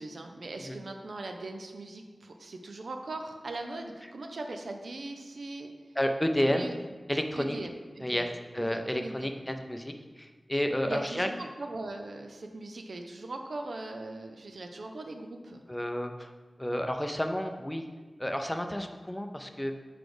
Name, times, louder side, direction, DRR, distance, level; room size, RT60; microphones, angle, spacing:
voice 1, 0.0-5.7 6.5-6.7 7.4-7.7 8.0-8.3 8.6-9.3 10.8-15.6, right 2 dB, 85° right, 4 dB, 0.6 m, -40 dB
voice 2, 6.0-6.7 7.1-7.6 8.0-8.3 8.5-11.3 15.7-16.3 16.6-17.9 18.2-19.7, equal, 15° left, 5 dB, 0.5 m, -31 dB
4.7 x 4.2 x 4.9 m, 1.4 s
wide cardioid pair, 65°, 0 cm